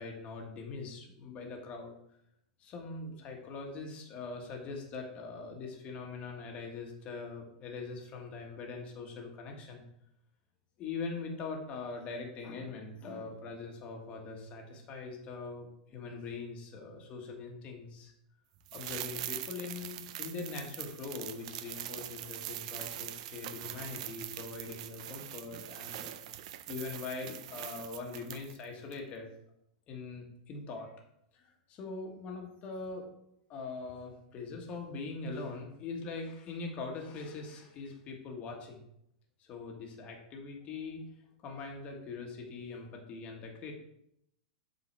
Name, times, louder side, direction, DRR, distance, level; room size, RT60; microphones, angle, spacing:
voice 1, 0.0-1.9 2.6-9.8 10.8-18.1 18.7-26.1 26.7-29.3 29.9-30.9 31.3-33.1 33.5-38.8 39.4-41.0 41.4-43.7, left 4 dB, 30° left, 1 dB, 1.3 m, -42 dB
sound 1, 18.7-28.6 28.9-29.0, right 13 dB, 55° right, 0.5 m, -43 dB
7.1 x 3.8 x 4.5 m, 0.77 s
supercardioid pair, 140°, 4 cm